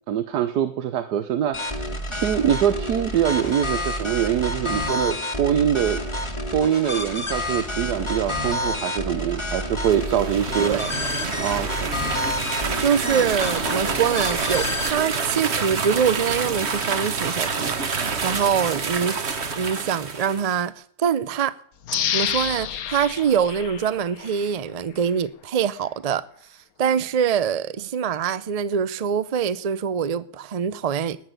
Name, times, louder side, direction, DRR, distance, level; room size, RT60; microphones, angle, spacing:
voice 1, 0.1-6.0 6.5-10.8 11.4-12.0, right 9 dB, 90° right, 1.4 m, -24 dB
sound 1, 1.5-14.9, left 1 dB, 20° left, 1.4 m, -29 dB
sound 2, 9.8-20.6, right 4 dB, 45° right, 1.5 m, -28 dB
voice 2, 10.6-10.9 12.8-19.2 19.6-21.5 22.1-26.2 26.8-31.2, right 7 dB, 70° right, 0.3 m, -24 dB
sound 3, 21.9-24.5 25.0-25.1, left 9 dB, 70° left, 1.3 m, -29 dB
10.5 x 10.0 x 9.2 m
omnidirectional pair, 1.7 m